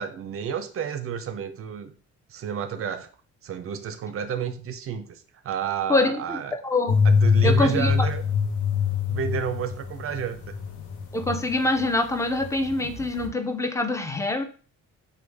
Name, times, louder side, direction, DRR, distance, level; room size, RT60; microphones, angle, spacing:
voice 1, 0.0-1.9 2.3-3.1 3.4-6.6 7.0-8.2 9.1-10.6, right 8 dB, 50° right, 10 dB, 0.5 m, -31 dB
voice 2, 5.9-6.4 6.6-7.0 7.4-7.9 11.1-14.4, left 2 dB, 10° left, 6 dB, 0.4 m, -25 dB
sound 1, 6.9-11.9 12.2-13.3, left 6 dB, 75° left, 0.7 m, -24 dB
3.1 x 2.2 x 3.3 m, 0.39 s
cardioid pair, 90°, 30 cm